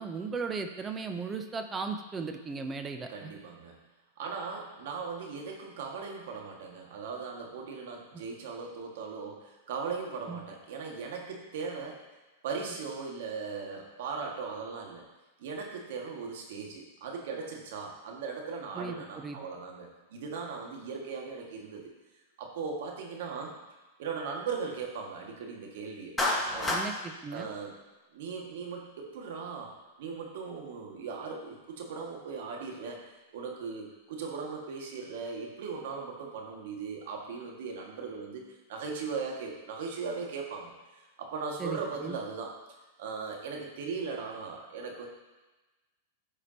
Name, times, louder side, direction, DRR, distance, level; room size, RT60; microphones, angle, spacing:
voice 1, 0.0-3.3 8.1-8.2 10.3-10.4 18.7-19.4 26.7-27.5 41.6-42.2, right 4 dB, 15° right, 6 dB, 0.7 m, -37 dB
voice 2, 3.1-3.7 4.2-12.0 12.4-15.0 15.4-21.9 22.4-23.5 24.0-26.2 26.5-26.8 27.3-27.8 28.1-29.7 30.0-38.4 38.7-42.5 43.0-45.1, right 5 dB, 70° right, 0 dB, 1.8 m, -38 dB
Clapping, 26.2-26.9, left 2 dB, 10° left, 1.5 m, -28 dB
14.0 x 4.9 x 2.9 m, 1.2 s
hypercardioid pair, 135°, 0 cm